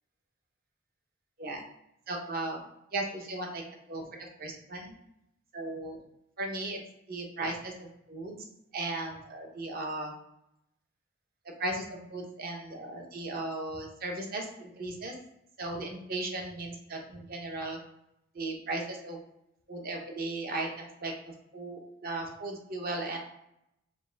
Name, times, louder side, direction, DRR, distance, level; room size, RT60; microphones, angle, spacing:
voice 1, 2.1-2.6 2.9-3.6 3.9-4.9 5.5-6.0 6.4-6.8 7.1-8.4 8.7-10.1 11.6-15.1 15.6-17.8 18.3-19.2 19.7-23.2, right 2 dB, 50° right, 2 dB, 0.8 m, -36 dB
4.8 x 2.2 x 3.3 m, 0.81 s
head